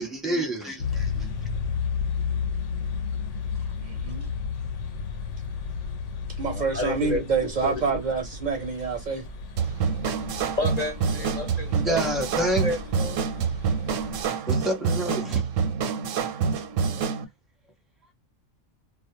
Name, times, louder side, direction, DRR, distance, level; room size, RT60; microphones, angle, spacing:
voice 1, 0.0-1.3 11.7-12.7 13.9-14.0 14.5-15.4, right 1 dB, ahead, 0.5 m, -28 dB
sound 1, 0.8-14.2, left 5 dB, 80° left, 0.9 m, -33 dB
voice 2, 3.8-4.3 6.4-9.3, right 5 dB, 55° right, 0.5 m, -27 dB
voice 3, 6.5-7.2 7.6-8.0 10.6-12.0 12.6-13.2, left 2 dB, 60° left, 0.4 m, -30 dB
sound 2, 9.6-17.2, right 6 dB, 85° right, 0.9 m, -27 dB
2.3 x 2.0 x 2.7 m
omnidirectional pair, 1.3 m